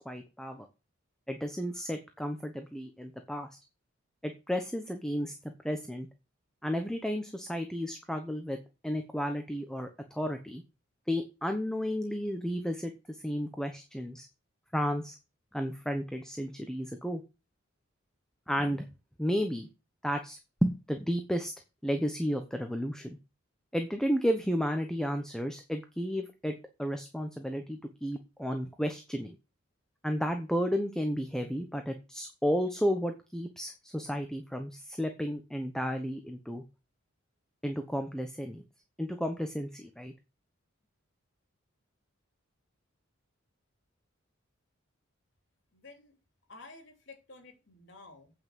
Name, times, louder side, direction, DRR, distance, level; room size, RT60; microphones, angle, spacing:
voice 1, 0.0-0.7 1.3-3.5 4.2-5.3 5.6-6.1 6.6-8.6 8.8-10.6 11.1-14.3 14.7-15.2 15.5-17.2 18.5-18.9 19.2-19.7 20.0-21.5 21.8-23.2 23.7-29.3 30.0-36.6 37.6-38.6 39.0-40.1, equal, 5° left, 6 dB, 1.0 m, -32 dB
voice 2, 45.7-46.2 46.5-48.3, left 3 dB, 60° left, 4 dB, 3.3 m, -52 dB
8.8 x 5.7 x 7.6 m, 0.29 s
head